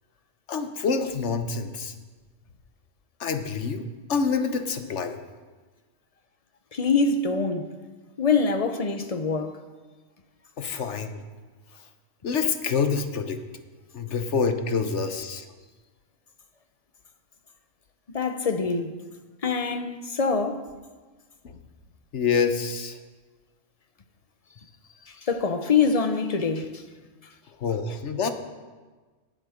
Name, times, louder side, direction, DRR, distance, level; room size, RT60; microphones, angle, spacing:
voice 1, 0.5-1.9 3.2-5.2 10.6-11.2 12.2-13.4 13.9-15.5 21.4-21.6 22.1-23.0 27.6-28.3, left 5 dB, 65° left, 1.2 m, -27 dB
voice 2, 6.7-7.7 8.2-9.6 18.1-19.0 19.4-20.7 25.1-26.8, left 5 dB, 35° left, 0.8 m, -25 dB
19.5 x 7.6 x 5.1 m
omnidirectional pair, 1.3 m